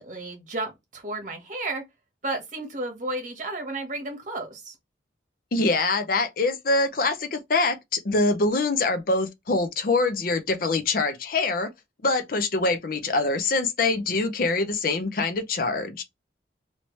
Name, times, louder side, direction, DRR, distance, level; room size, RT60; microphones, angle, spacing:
voice 1, 0.0-1.8 2.2-4.7, right 2 dB, 45° right, 1.2 m, -32 dB
voice 2, 5.5-11.7 12.0-16.0, left 3 dB, 50° left, 0.5 m, -24 dB
3.1 x 2.8 x 3.1 m
head